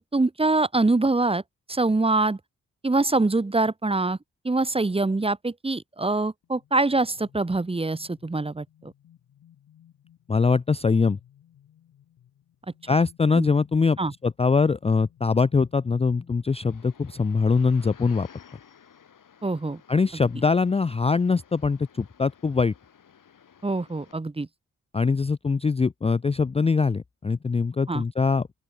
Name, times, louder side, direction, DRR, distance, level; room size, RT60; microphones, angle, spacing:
voice 1, 0.1-1.4 1.7-2.4 2.8-4.2 4.4-8.9 13.3-13.5 14.0-14.1 19.4-19.8 23.6-24.5 27.9-28.0, right 2 dB, 15° right, 0.9 m, -24 dB
sound 1, 6.4-16.9, left 11 dB, 90° left, 6.6 m, -59 dB
voice 2, 10.3-11.2 12.9-18.3 19.9-22.7 24.9-28.5, left 4 dB, 20° left, 0.4 m, -23 dB
sound 2, 16.5-24.1, left 8 dB, 70° left, 3.5 m, -54 dB
open air
supercardioid pair, 45°, 33 cm